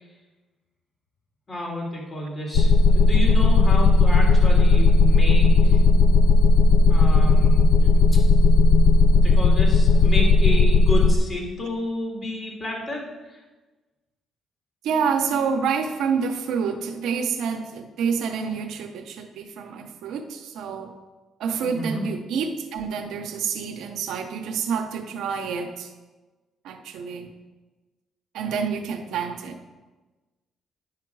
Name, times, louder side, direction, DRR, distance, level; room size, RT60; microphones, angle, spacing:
voice 1, 1.5-5.8 6.9-7.7 9.2-13.4 21.6-22.0, left 1 dB, 35° left, -2 dB, 2.9 m, -30 dB
sound 1, 2.5-11.2, left 3 dB, 85° left, 0.5 m, -16 dB
voice 2, 14.8-20.9 21.4-25.9 26.6-27.3 28.3-29.6, right 6 dB, 85° right, 5 dB, 0.8 m, -28 dB
9.8 x 5.8 x 4.7 m, 1.2 s
cardioid pair, 90°, 0 cm